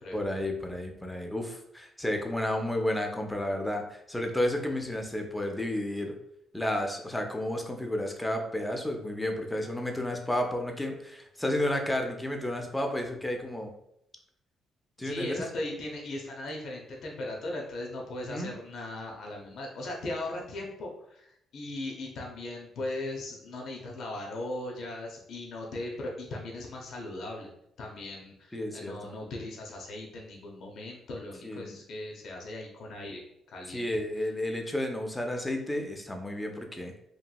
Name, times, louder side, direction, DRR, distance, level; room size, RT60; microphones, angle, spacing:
voice 1, 0.1-6.2 6.5-13.7 15.0-15.5 18.2-18.5 28.5-29.1 31.4-31.8 33.7-36.9, left 1 dB, 10° left, 3 dB, 0.5 m, -32 dB
voice 2, 15.0-27.5 27.8-33.2 33.5-33.8 34.2-34.3, left 2 dB, 65° left, -1 dB, 0.6 m, -38 dB
2.9 x 2.6 x 2.3 m, 0.75 s
cardioid pair, 90°, 0 cm